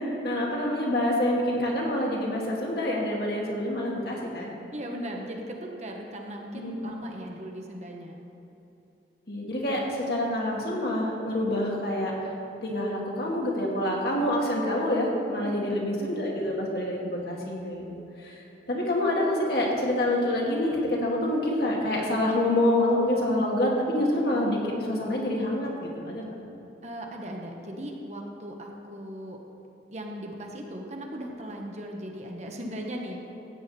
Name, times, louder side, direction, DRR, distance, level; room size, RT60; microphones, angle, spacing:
voice 1, 0.2-4.5 6.5-6.8 9.3-12.1 12.6-17.8 18.2-18.4 18.7-26.3, left 1 dB, 60° left, -3 dB, 2.2 m, -27 dB
voice 2, 4.7-8.2 15.4-15.8 23.4-23.6 26.8-29.4 29.9-33.4, equal, 40° right, 1 dB, 1.2 m, -38 dB
15.0 x 8.7 x 4.3 m, 3.0 s
head